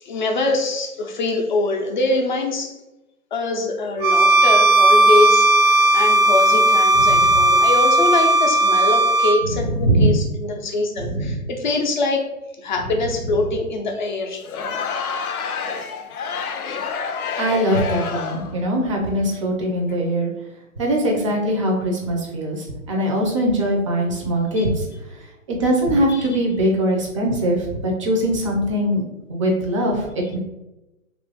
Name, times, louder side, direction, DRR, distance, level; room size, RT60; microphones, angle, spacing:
voice 1, 0.0-2.8 3.3-12.3 12.6-14.5 17.1-17.5 24.6-24.7 26.1-26.3, left 2 dB, 35° left, 2 dB, 0.5 m, -24 dB
Bowed string instrument, 4.0-9.4, right 1 dB, 90° right, 0.5 m, -15 dB
voice 2, 9.5-10.2 11.0-11.4 17.4-20.3 20.8-24.8 25.6-29.0 29.3-30.0 30.3-30.4, right 1 dB, 25° right, -1 dB, 0.5 m, -21 dB
Crowd, 14.4-18.6, left 5 dB, 90° left, 0.6 m, -28 dB
3.0 x 2.5 x 3.4 m, 0.97 s
hypercardioid pair, 145°, 42 cm